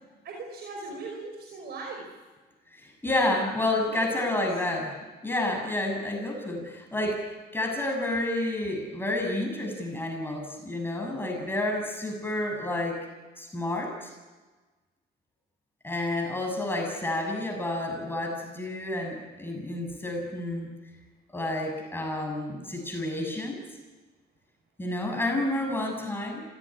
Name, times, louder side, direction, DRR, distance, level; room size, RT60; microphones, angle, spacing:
voice 1, 0.2-2.1 3.2-3.5 3.7-4.4, right 3 dB, 65° right, 1 dB, 5.4 m, -40 dB
voice 2, 2.7-4.9 5.2-13.0 13.4-14.1 15.8-20.7 21.3-23.6 24.8-26.4, left 1 dB, 10° left, 2 dB, 6.8 m, -30 dB
26.0 x 17.5 x 9.9 m, 1.3 s
cardioid pair, 100°, 18 cm